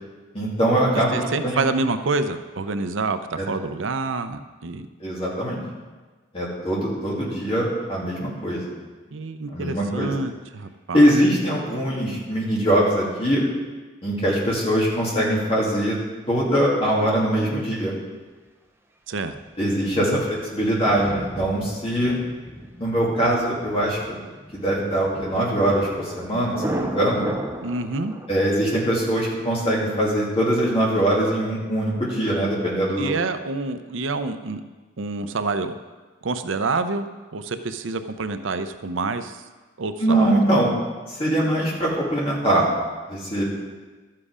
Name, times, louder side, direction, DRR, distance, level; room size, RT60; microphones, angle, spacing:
voice 1, 0.3-1.2 1.4-1.6 3.4-3.5 5.0-5.6 6.3-8.6 9.5-10.1 10.9-13.4 14.0-16.0 16.3-17.9 19.6-22.2 22.8-24.2 24.5-27.3 28.3-33.1 40.0-40.7 41.1-42.7 43.1-43.4, right 1 dB, 30° left, -5 dB, 2.6 m, -22 dB
voice 2, 1.1-4.9 9.1-11.1 19.1-19.3 19.9-20.2 27.6-28.1 33.0-34.6 35.0-35.8 36.2-39.4 39.8-40.3, right 3 dB, 80° right, 9 dB, 0.6 m, -27 dB
Thunder, 19.3-28.3, right 1 dB, 10° right, 0.8 m, -35 dB
12.5 x 7.6 x 4.9 m, 1.3 s
head